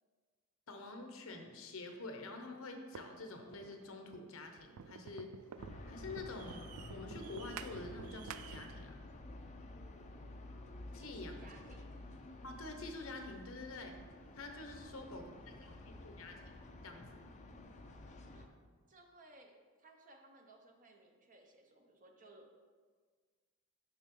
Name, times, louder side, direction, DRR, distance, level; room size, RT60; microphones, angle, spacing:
voice 1, 0.7-5.3 5.9-9.0 10.9-11.5 12.4-14.0 14.4-17.2, left 2 dB, 70° left, 5 dB, 0.9 m, -47 dB
sound 1, 2.9-8.9, right 7 dB, 90° right, 0.4 m, -51 dB
sound 2, 5.6-18.5, left 2 dB, 35° left, 0.5 m, -51 dB
voice 2, 11.0-12.0 14.7-15.9 18.3-18.5 18.9-22.6, right 2 dB, 40° right, 2 dB, 0.8 m, -61 dB
7.0 x 6.1 x 3.7 m, 1.5 s
head